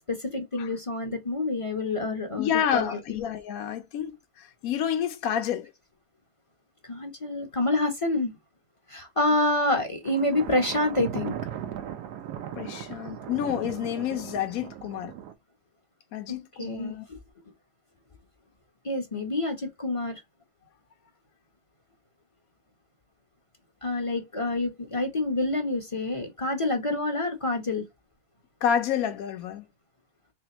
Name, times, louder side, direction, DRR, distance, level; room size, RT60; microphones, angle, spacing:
voice 1, 0.1-3.2 6.9-8.3 8.9-11.4 16.6-17.0 18.8-20.2 23.8-27.8, left 2 dB, 25° left, 0.7 m, -27 dB
voice 2, 2.4-5.7 12.6-15.1 16.1-17.1 28.6-29.6, left 9 dB, 65° left, 1.2 m, -29 dB
Thunder, 10.1-15.3, right 9 dB, 90° right, 1.3 m, -37 dB
3.4 x 3.4 x 2.8 m
omnidirectional pair, 1.7 m